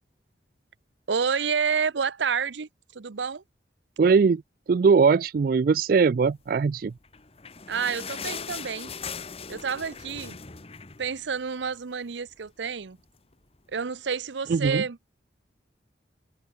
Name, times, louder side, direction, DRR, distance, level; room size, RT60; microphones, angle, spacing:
voice 1, 1.1-3.4 7.7-8.9 9.5-10.4 11.0-13.0 13.7-15.0, right 6 dB, 85° right, 0.7 m, -29 dB
voice 2, 4.0-4.4 4.7-6.9 14.5-14.8, right 5 dB, 55° right, 0.3 m, -20 dB
sound 1, 7.0-11.7 12.1-12.2 12.5-12.7 13.3-13.4, left 6 dB, 35° left, 1.3 m, -39 dB
head